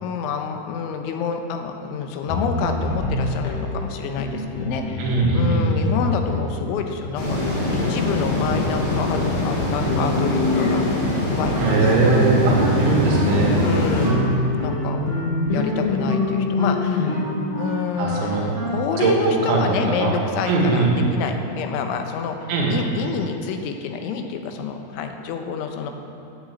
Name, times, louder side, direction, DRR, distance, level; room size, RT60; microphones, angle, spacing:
voice 1, 0.0-10.8 11.2-11.9 13.6-15.0 15.5-17.3 17.5-22.4 22.7-25.9, left 6 dB, 90° left, 5 dB, 3.4 m, -28 dB
sound 1, 2.3-17.5, left 2 dB, 60° left, 2.3 m, -26 dB
voice 2, 5.0-5.7 11.6-13.6 18.0-18.4 19.0-20.1 20.5-20.9 22.5-22.8, right 3 dB, 80° right, -2 dB, 4.3 m, -20 dB
sound 2, 7.2-14.1, left 1 dB, 40° left, 3.8 m, -23 dB
Wind instrument woodwind instrument, 11.5-19.1, equal, 45° right, 0.7 m, -32 dB
11.5 x 9.3 x 8.3 m, 2.8 s
omnidirectional pair, 5.3 m